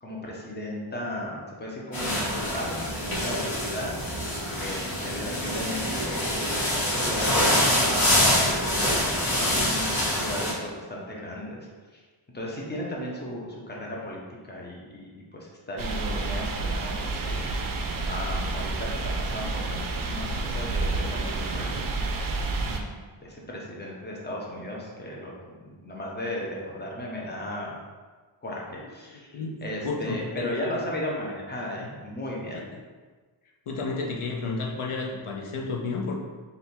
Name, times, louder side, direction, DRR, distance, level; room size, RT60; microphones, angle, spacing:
voice 1, 0.0-8.8 9.2-11.7 11.9-12.0 12.3-21.8 22.6-22.9 23.2-27.8 28.4-29.3 29.6-32.6, left 1 dB, 20° left, -3 dB, 0.9 m, -36 dB
sound 1, 1.9-10.5, left 1 dB, 45° left, 1.3 m, -25 dB
sound 2, 15.8-22.8, right 3 dB, 45° right, 0.5 m, -29 dB
voice 2, 29.8-30.6 32.5-32.6 33.7-36.1, left 3 dB, 80° left, 0 dB, 0.8 m, -31 dB
3.4 x 2.7 x 4.4 m, 1.4 s
wide cardioid pair, 70°, 50 cm